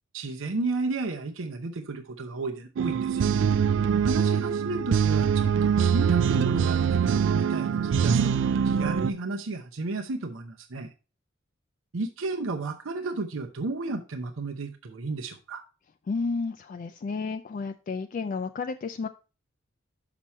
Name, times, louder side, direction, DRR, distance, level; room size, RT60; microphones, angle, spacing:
voice 1, 0.1-3.2 4.0-8.4 8.6-10.9 11.9-15.6, right 3 dB, 75° right, 4 dB, 0.7 m, -33 dB
sound 1, 2.8-9.1, right 7 dB, 60° right, 0.3 m, -23 dB
voice 2, 16.1-19.1, left 4 dB, 40° left, 8 dB, 0.3 m, -31 dB
6.0 x 5.7 x 4.2 m, 0.33 s
head